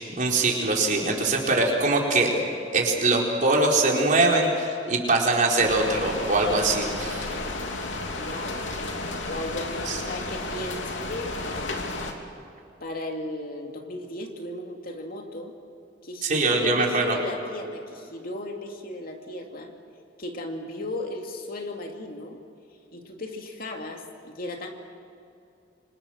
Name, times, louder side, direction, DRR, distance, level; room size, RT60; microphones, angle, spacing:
voice 1, 0.2-2.3 2.7-7.3 9.9-10.0 16.2-17.2, right 2 dB, 45° right, -1 dB, 4.4 m, -22 dB
sound 1, 5.6-12.1, left 2 dB, 80° left, 2.9 m, -32 dB
voice 2, 8.1-8.7 9.3-11.8 12.8-15.5 16.0-19.7 20.2-22.4 22.9-24.7, left 2 dB, 50° left, 2 dB, 2.7 m, -35 dB
28.5 x 25.5 x 6.5 m, 2.6 s
head